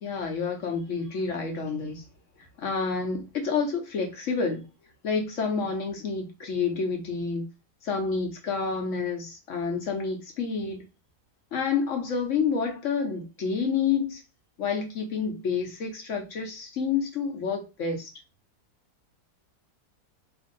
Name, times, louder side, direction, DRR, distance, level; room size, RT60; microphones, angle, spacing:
voice 1, 0.0-2.0 2.6-4.6 5.0-7.4 7.8-10.8 11.5-14.2 14.6-18.1, left 5 dB, 60° left, 3 dB, 1.0 m, -29 dB
3.0 x 2.6 x 3.8 m, 0.28 s
omnidirectional pair, 1.7 m